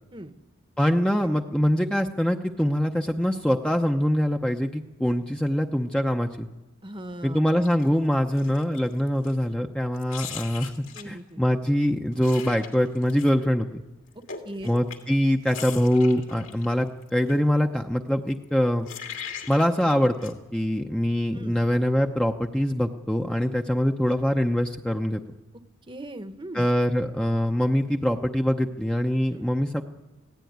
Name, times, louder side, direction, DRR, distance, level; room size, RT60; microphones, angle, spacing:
voice 1, 0.8-6.5 7.2-13.8 14.6-18.9 19.5-25.2 26.5-29.8, equal, 5° left, 3 dB, 0.7 m, -24 dB
voice 2, 6.8-7.5 10.9-11.4 14.4-14.8 21.3-21.6 25.9-26.7 29.3-29.5, right 1 dB, 20° right, 9 dB, 1.0 m, -39 dB
sound 1, 7.6-7.9 8.3-9.5 9.9-11.2 12.1-13.3 14.1-17.4 18.4-18.5 18.9-19.9 20.2-20.3, left 7 dB, 65° left, 2.6 m, -40 dB
26.0 x 17.0 x 9.4 m, 1.1 s
head